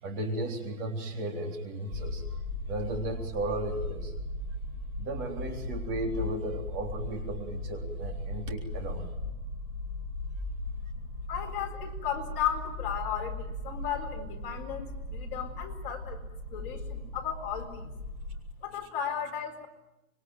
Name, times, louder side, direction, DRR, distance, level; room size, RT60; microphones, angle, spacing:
voice 1, 0.0-2.4 2.7-4.1 5.0-9.1, right 1 dB, 25° right, 2 dB, 3.8 m, -35 dB
sound 1, 1.9-18.4, left 2 dB, 5° right, 4.8 m, -38 dB
voice 2, 11.3-16.2 16.5-17.9 18.6-19.7, left 8 dB, 40° left, 3 dB, 4.3 m, -35 dB
26.0 x 23.0 x 9.2 m, 0.98 s
hypercardioid pair, 165°, 43 cm